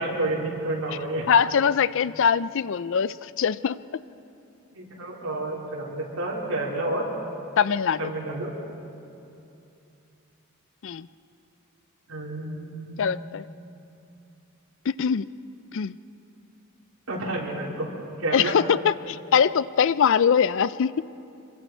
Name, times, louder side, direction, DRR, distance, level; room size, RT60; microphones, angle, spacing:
voice 1, 0.0-1.3 4.7-7.1 8.0-8.5 12.1-13.1 17.1-17.9 18.2-18.6, right 2 dB, 80° right, -5 dB, 3.8 m, -30 dB
voice 2, 1.3-3.8 7.6-8.1 10.8-11.1 13.0-13.4 14.9-15.3 15.7-16.0 18.3-21.1, left 7 dB, 60° left, 17 dB, 0.4 m, -22 dB
26.5 x 23.5 x 4.6 m, 2.7 s
head